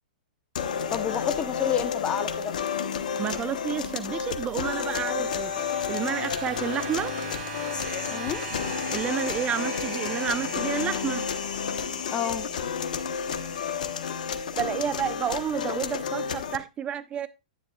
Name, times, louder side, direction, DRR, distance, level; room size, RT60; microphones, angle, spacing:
sound 1, 0.6-16.6, left 7 dB, 70° left, 0.9 m, -31 dB
voice 1, 0.9-2.5 8.1-8.5 12.1-12.5, left 8 dB, 25° left, 0.8 m, -29 dB
voice 2, 3.2-5.5 5.9-7.1 8.9-11.3 14.6-17.3, right 9 dB, 25° right, 0.7 m, -30 dB
sound 2, 4.5-12.3 13.3-13.4, right 4 dB, 65° right, 2.9 m, -40 dB
9.9 x 9.4 x 2.3 m
hypercardioid pair, 115°, 4 cm